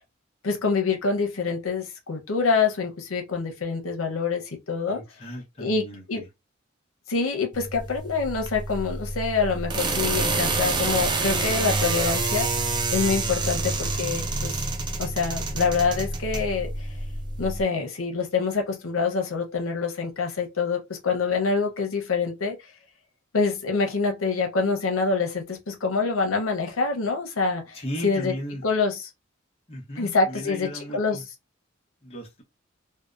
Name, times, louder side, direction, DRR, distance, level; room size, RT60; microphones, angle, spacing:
voice 1, 0.4-5.0 5.6-6.2 7.1-14.6 15.0-16.9 17.4-22.6 23.3-27.8 28.0-28.3 28.6-29.0 30.0-31.2, left 4 dB, 90° left, 0.7 m, -26 dB
voice 2, 4.9-6.3 27.7-28.6 29.7-31.2 32.0-32.4, equal, 30° left, 0.8 m, -36 dB
sound 1, 7.5-17.6, right 3 dB, 20° right, 0.3 m, -28 dB
2.7 x 2.0 x 2.3 m
head